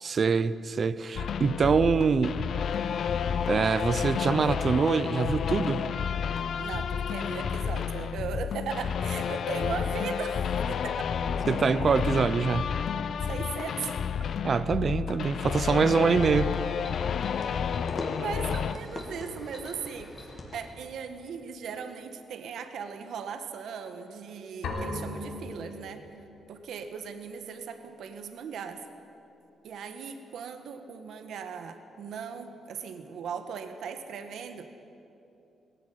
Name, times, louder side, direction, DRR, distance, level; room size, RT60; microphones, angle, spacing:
voice 1, 0.0-2.4 3.5-5.9 11.5-12.7 14.4-16.6, right 5 dB, 40° right, 0.7 m, -25 dB
sound 1, 1.2-18.7, left 7 dB, 55° left, 0.7 m, -30 dB
voice 2, 6.6-11.1 13.2-13.9 18.2-20.1 20.5-26.0 26.5-28.8 29.6-34.7, right 6 dB, 70° right, 1.6 m, -38 dB
sound 2, 16.0-20.8, left 2 dB, 30° left, 3.0 m, -41 dB
sound 3, 24.6-26.4, left 2 dB, 80° left, 3.7 m, -37 dB
19.5 x 16.5 x 9.5 m
cardioid pair, 140°, 0 cm